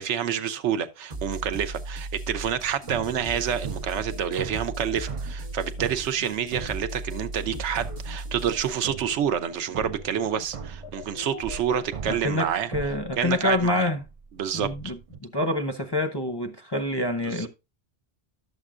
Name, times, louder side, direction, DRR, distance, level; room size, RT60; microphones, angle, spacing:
voice 1, 0.0-12.7 13.2-13.9 14.4-14.9 17.4-17.5, right 8 dB, 85° right, 1.0 m, -28 dB
sound 1, 1.1-8.8, right 2 dB, 45° right, 0.9 m, -37 dB
sound 2, 2.3-7.5 7.8-15.2, right 7 dB, 65° right, 0.3 m, -40 dB
sound 3, 2.8-11.8, left 10 dB, 85° left, 0.9 m, -44 dB
voice 2, 12.0-14.0 14.5-17.5, left 1 dB, 30° left, 0.5 m, -27 dB
11.0 x 7.3 x 2.4 m
omnidirectional pair, 1.2 m